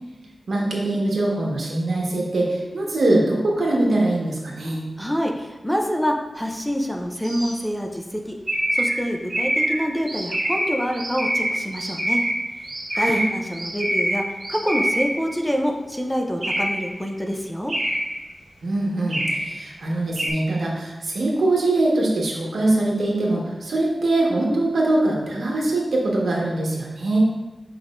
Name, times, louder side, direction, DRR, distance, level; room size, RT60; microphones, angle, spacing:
voice 1, 0.5-4.8 12.9-13.2 18.6-27.2, right 2 dB, 85° right, -3 dB, 1.4 m, -22 dB
voice 2, 5.0-8.4 8.7-12.2 13.0-17.7, equal, 5° left, 2 dB, 0.6 m, -26 dB
sound 1, 7.2-7.5 8.5-15.3 16.4-16.9 17.7-18.3 19.1-19.6 20.2-20.3, right 1 dB, 55° right, 1.7 m, -25 dB
8.4 x 5.4 x 2.6 m, 1.1 s
wide cardioid pair, 120°, 0 cm